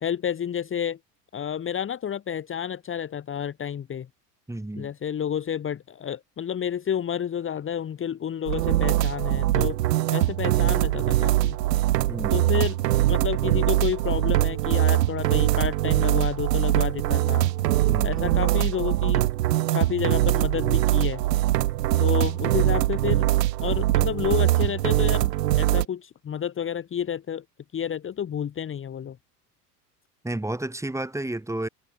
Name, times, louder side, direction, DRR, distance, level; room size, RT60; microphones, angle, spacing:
voice 1, 0.0-1.0 1.3-4.1 4.7-9.8 10.1-11.6 12.3-12.8 13.1-17.5 18.0-19.2 19.7-21.2 22.0-23.3 23.6-25.3 25.6-27.4 27.7-29.2, left 9 dB, 25° left, 1.8 m, -30 dB
voice 2, 4.5-4.9 12.1-12.6 17.9-18.3 30.2-31.7, right 1 dB, 5° right, 4.7 m, -32 dB
sound 1, 8.5-25.9, right 15 dB, 85° right, 0.6 m, -22 dB
hypercardioid pair, 85°, 47 cm